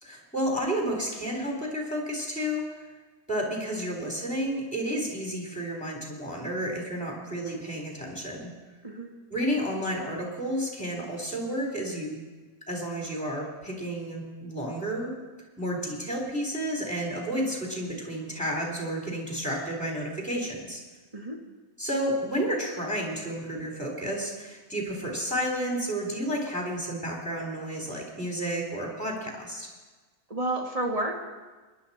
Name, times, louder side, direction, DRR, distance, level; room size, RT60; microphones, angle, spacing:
voice 1, 0.0-2.9 3.3-8.5 9.3-12.2 12.7-15.1 15.6-20.8 21.8-29.7, equal, 5° left, -1 dB, 3.5 m, -31 dB
voice 2, 8.8-9.1 21.1-21.4 30.3-31.2, right 1 dB, 25° right, 0 dB, 2.1 m, -30 dB
22.0 x 11.0 x 4.3 m, 1.3 s
omnidirectional pair, 1.6 m